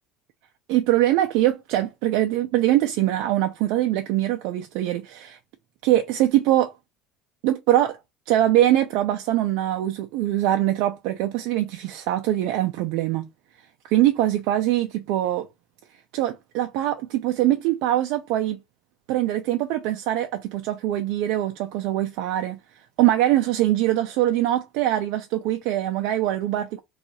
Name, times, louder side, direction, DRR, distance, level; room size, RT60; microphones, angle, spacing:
voice 1, 0.7-5.4 5.8-6.7 7.4-8.0 8.3-13.3 13.9-15.5 16.1-18.6 19.1-22.6 23.0-26.8, right 13 dB, 70° right, 0.4 m, -23 dB
2.7 x 2.4 x 4.0 m
cardioid pair, 165°, 0 cm